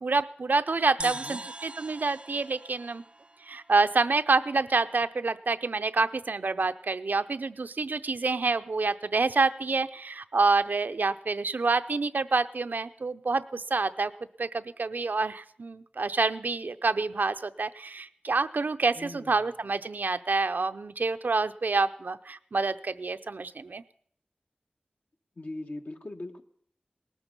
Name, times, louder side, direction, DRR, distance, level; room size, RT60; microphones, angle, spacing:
voice 1, 0.0-3.0 3.5-14.1 14.4-23.8, right 3 dB, 75° right, 10 dB, 0.6 m, -27 dB
voice 2, 1.0-1.4 18.9-19.4 25.4-26.4, left 2 dB, 60° left, 5 dB, 1.2 m, -40 dB
sound 1, 1.0-4.5, right 2 dB, 35° right, 0.6 m, -42 dB
19.0 x 13.5 x 5.3 m, 0.62 s
wide cardioid pair, 70°, 3 cm